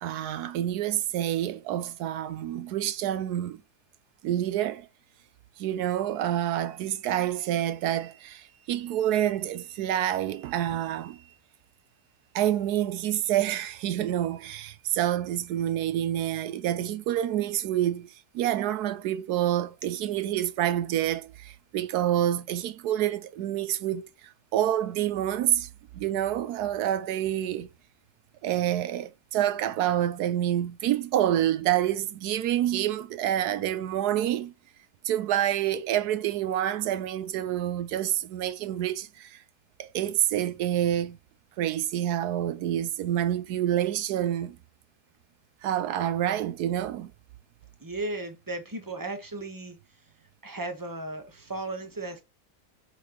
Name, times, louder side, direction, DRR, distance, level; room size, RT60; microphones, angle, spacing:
voice 1, 0.0-3.6 4.2-4.9 5.6-11.2 12.3-27.7 28.4-34.5 35.0-39.4 39.8-41.2 41.6-44.6 45.6-47.1, right 11 dB, 85° right, 1.2 m, -28 dB
voice 2, 47.8-49.8 50.4-52.2, right 2 dB, 15° right, 0.9 m, -35 dB
5.9 x 5.7 x 2.9 m
omnidirectional pair, 1.7 m